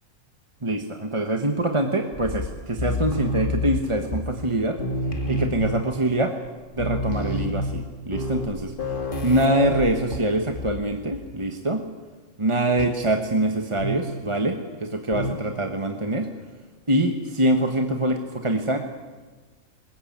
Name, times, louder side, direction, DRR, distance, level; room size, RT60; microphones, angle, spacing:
voice 1, 0.6-4.8 5.3-6.3 6.8-8.7 9.2-11.8 12.4-16.3 16.9-18.8, right 1 dB, 20° right, 4 dB, 1.4 m, -24 dB
sound 1, 2.1-4.5 4.8-6.1 6.5-6.6 6.7-10.9 11.1-11.4 12.8-13.0 13.8-14.2 15.1-15.5, left 1 dB, 35° left, 2.1 m, -29 dB
21.0 x 20.5 x 8.8 m, 1.3 s
omnidirectional pair, 1.5 m